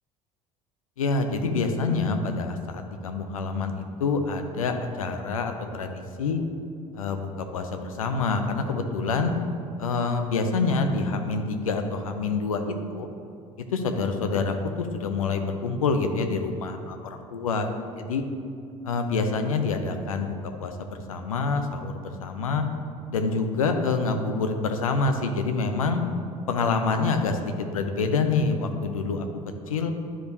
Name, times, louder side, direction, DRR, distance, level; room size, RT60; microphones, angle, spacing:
voice 1, 1.0-6.4 6.9-9.3 9.8-13.1 13.6-17.7 18.1-18.2 18.8-22.6 23.1-26.0 26.5-29.2 29.7-29.9, left 4 dB, 80° left, 6 dB, 0.6 m, -27 dB
10.0 x 4.9 x 2.7 m, 2.5 s
figure-of-eight pair, 60°, 18 cm